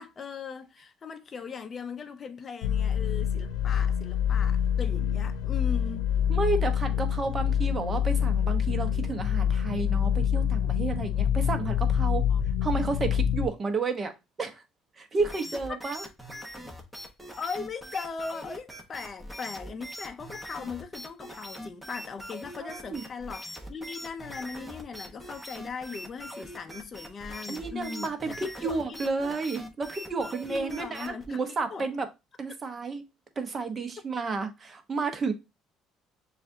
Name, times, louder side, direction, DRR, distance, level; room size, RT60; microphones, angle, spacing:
voice 1, 0.0-6.0 12.3-12.4 15.7-15.8 17.4-29.0 30.2-31.9, left 5 dB, 35° left, 0.5 m, -39 dB
sound 1, 2.6-13.5, left 9 dB, 85° left, 0.5 m, -26 dB
voice 2, 6.3-12.2 12.6-14.1 14.4-14.6 15.0-16.1 22.6-23.1 27.5-32.1 32.4-33.0 33.4-35.3, right 4 dB, 35° right, 0.9 m, -31 dB
sound 2, 15.2-31.3, equal, 5° right, 1.1 m, -42 dB
6.7 x 2.5 x 2.7 m
supercardioid pair, 95°, 0 cm